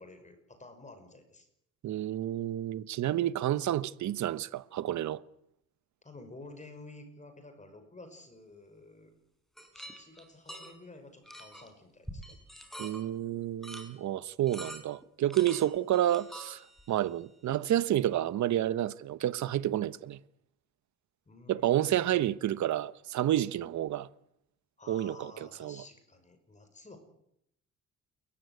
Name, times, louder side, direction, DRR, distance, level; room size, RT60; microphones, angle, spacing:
voice 1, 0.0-1.5 6.0-9.1 9.7-12.4 21.3-22.4 24.8-27.0, left 2 dB, 25° left, 5.7 m, -51 dB
voice 2, 1.8-5.2 12.8-16.6 16.9-20.2 21.5-24.1 24.9-25.3 25.6-25.8, right 12 dB, 70° right, 1.1 m, -30 dB
sound 1, 9.6-10.8 11.3-11.7 12.1-13.0 13.6-13.9 14.4-15.0 15.3-17.0, equal, ahead, 5.9 m, -45 dB
29.0 x 15.0 x 9.6 m
cardioid pair, 90°, 30 cm